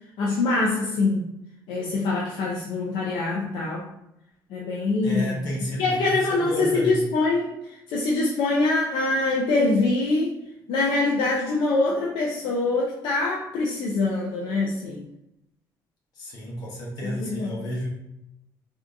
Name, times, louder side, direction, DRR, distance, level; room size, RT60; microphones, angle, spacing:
voice 1, 0.2-1.3 1.7-3.9 4.5-5.5 5.8-10.4 10.7-15.0 17.0-17.7, left 3 dB, 80° left, -2 dB, 0.5 m, -24 dB
voice 2, 5.0-7.0 16.1-17.9, equal, 60° left, -3 dB, 1.1 m, -31 dB
3.4 x 2.7 x 2.5 m, 0.85 s
cardioid pair, 145°, 8 cm